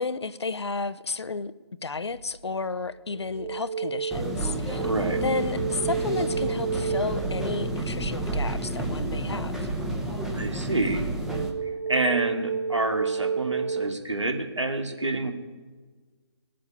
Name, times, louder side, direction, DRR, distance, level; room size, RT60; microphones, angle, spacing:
voice 1, 0.0-1.5 1.8-4.8 5.2-9.7, left 4 dB, 70° left, 14 dB, 0.8 m, -32 dB
sound 1, 2.1-2.4 2.8-8.7 11.2-13.9, right 6 dB, 65° right, 1.8 m, -31 dB
sound 2, 4.1-11.5, right 1 dB, 5° right, 0.9 m, -30 dB
voice 2, 4.8-5.2 10.4-11.1 11.9-15.3, right 2 dB, 90° right, 5 dB, 2.4 m, -28 dB
18.5 x 7.7 x 9.8 m, 1.4 s
figure-of-eight pair, 150°, 15 cm